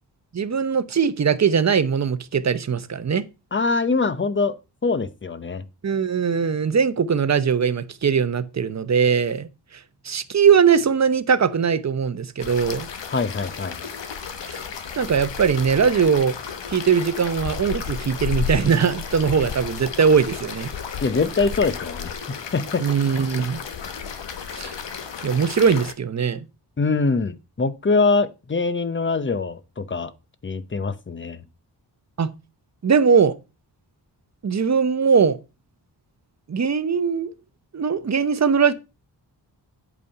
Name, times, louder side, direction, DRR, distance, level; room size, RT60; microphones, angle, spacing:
voice 1, 0.3-3.2 5.8-9.5 10.0-12.9 14.4-14.6 15.0-16.3 16.7-20.7 22.8-23.6 24.5-24.7 25.2-26.5 32.2-32.3 32.8-33.3 34.4-35.4 36.5-37.3 37.7-38.7, right 6 dB, 40° right, 0.8 m, -20 dB
voice 2, 3.5-4.5 4.8-5.6 13.1-13.8 21.0-22.9 26.8-30.1 30.4-31.4, left 4 dB, 30° left, 0.8 m, -23 dB
sound 1, 12.4-25.9, left 6 dB, 85° left, 1.2 m, -33 dB
8.5 x 5.4 x 5.4 m
wide cardioid pair, 110°, 42 cm